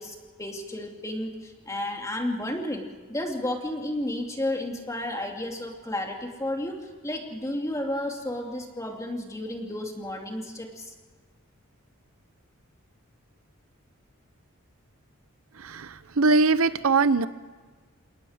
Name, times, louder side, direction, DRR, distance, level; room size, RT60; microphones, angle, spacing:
voice 1, 0.0-2.8 3.1-10.9, left 1 dB, 15° left, 2 dB, 2.6 m, -32 dB
voice 2, 16.2-17.3, right 3 dB, 75° right, 14 dB, 0.7 m, -21 dB
29.0 x 18.5 x 5.1 m, 1.4 s
head